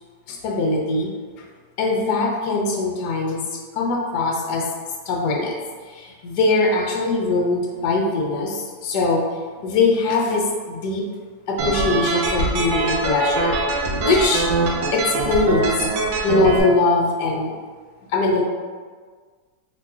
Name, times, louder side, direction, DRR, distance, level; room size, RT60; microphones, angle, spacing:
voice 1, 0.3-1.1 1.8-3.4 3.7-4.7 5.1-5.5 5.9-9.3 9.6-11.0 11.5-14.5 14.9-15.7 16.2-17.5 18.1-18.4, left 3 dB, 70° left, -1 dB, 1.1 m, -21 dB
sound 1, 11.6-16.6, right 2 dB, 80° right, 1.3 m, -23 dB
4.0 x 3.2 x 2.3 m, 1.5 s
omnidirectional pair, 1.9 m